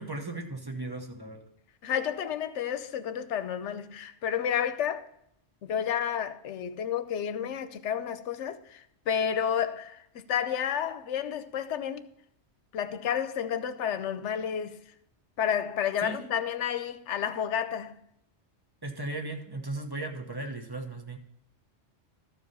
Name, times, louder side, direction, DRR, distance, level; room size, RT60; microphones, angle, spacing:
voice 1, 0.0-1.4 16.0-16.3 18.8-21.2, right 2 dB, 20° right, 1.1 m, -36 dB
voice 2, 1.8-5.1 5.6-12.1 12.7-14.8 15.4-18.0, left 8 dB, 85° left, 1.0 m, -31 dB
13.5 x 4.8 x 5.4 m
omnidirectional pair, 1.2 m